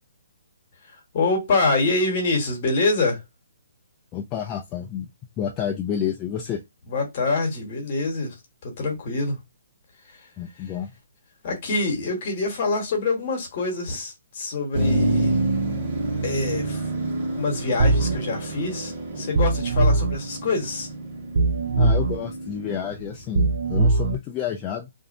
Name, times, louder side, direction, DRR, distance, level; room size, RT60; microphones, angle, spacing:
voice 1, 1.1-3.2 6.9-8.4 8.6-9.4 11.4-15.4 16.2-16.8 17.4-20.9, left 3 dB, 40° left, 1.1 m, -25 dB
voice 2, 4.1-5.1 5.4-6.6 10.4-10.9 21.8-24.9, left 8 dB, 20° left, 0.3 m, -29 dB
Motor vehicle (road), 14.7-23.7, right 2 dB, 35° right, 1.3 m, -28 dB
sound 1, 17.8-18.2 19.4-20.2 21.4-22.2 23.4-24.2, right 3 dB, 60° right, 0.4 m, -20 dB
2.6 x 2.0 x 2.5 m
hypercardioid pair, 155°, 0 cm